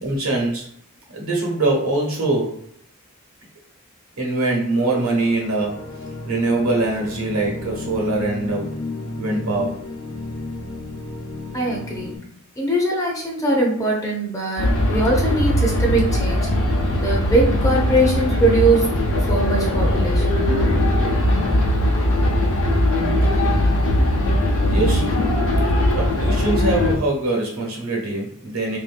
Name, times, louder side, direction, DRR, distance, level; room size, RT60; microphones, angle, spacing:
voice 1, 0.0-0.7 1.1-2.6 4.2-5.9 6.2-8.7 9.2-9.8 23.4-23.5 24.6-25.1 25.9-28.8, right 2 dB, 65° right, -1 dB, 1.0 m, -23 dB
sound 1, 5.2-12.2, left 2 dB, 90° left, 0.8 m, -32 dB
voice 2, 11.5-12.2 12.6-16.5 17.0-19.0 19.3-20.5 24.8-24.9, right 2 dB, 15° left, -2 dB, 0.6 m, -21 dB
sound 2, 14.6-27.0, left 1 dB, 60° left, 0.8 m, -19 dB
3.4 x 2.6 x 2.5 m, 0.63 s
head